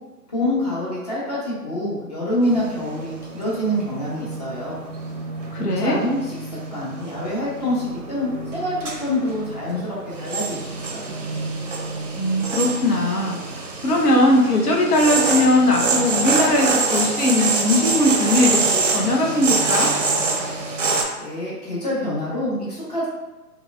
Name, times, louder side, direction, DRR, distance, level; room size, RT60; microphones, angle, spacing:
voice 1, 0.3-4.8 5.6-6.4 6.7-11.1 21.2-23.1, left 1 dB, 25° left, -7 dB, 0.8 m, -26 dB
sound 1, 2.4-21.0, right 3 dB, 50° right, 0.5 m, -26 dB
voice 2, 5.5-6.0 12.1-19.9, left 1 dB, 70° left, -1 dB, 0.9 m, -19 dB
3.0 x 2.8 x 2.3 m, 1.1 s
figure-of-eight pair, 145°, 48 cm